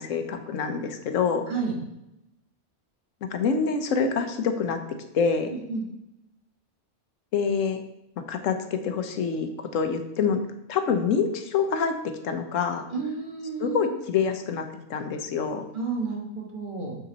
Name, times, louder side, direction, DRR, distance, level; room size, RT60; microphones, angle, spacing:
voice 1, 0.0-1.4 3.2-4.8 5.1-5.5 7.3-7.8 8.3-10.4 10.7-11.9 12.2-12.9 13.6-14.6 14.9-15.7, left 6 dB, 85° left, 7 dB, 1.1 m, -26 dB
voice 2, 5.5-5.9 12.9-13.9 15.7-17.0, right 4 dB, 40° right, -2 dB, 1.5 m, -31 dB
6.7 x 5.8 x 4.0 m, 0.85 s
omnidirectional pair, 1.3 m